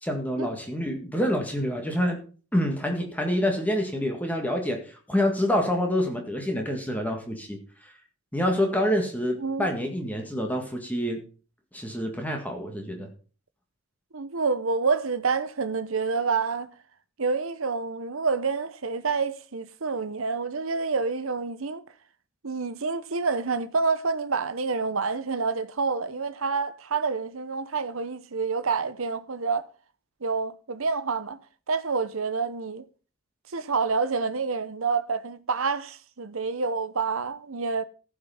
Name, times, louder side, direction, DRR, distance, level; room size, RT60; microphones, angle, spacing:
voice 1, 0.0-2.2 2.5-7.9 8.3-11.2 11.7-13.1, equal, 5° left, 1.8 m, -27 dB
voice 2, 14.1-16.7 17.2-21.8 22.4-29.7 30.2-31.4 31.7-32.9 33.5-37.8, right 4 dB, 70° right, 0.9 m, -28 dB
15.0 x 5.9 x 5.7 m
head